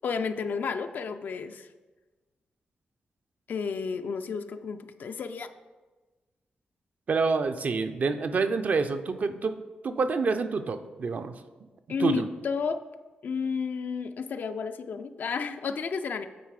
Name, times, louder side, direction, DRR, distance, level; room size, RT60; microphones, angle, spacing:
voice 1, 0.0-1.7 3.5-5.5 11.9-12.8 13.2-16.3, left 5 dB, 70° left, 9 dB, 0.4 m, -31 dB
voice 2, 7.1-9.6 9.8-11.3 12.0-12.2, right 4 dB, 55° right, 8 dB, 0.5 m, -27 dB
9.1 x 4.1 x 4.8 m, 1.2 s
cardioid pair, 85°, 3 cm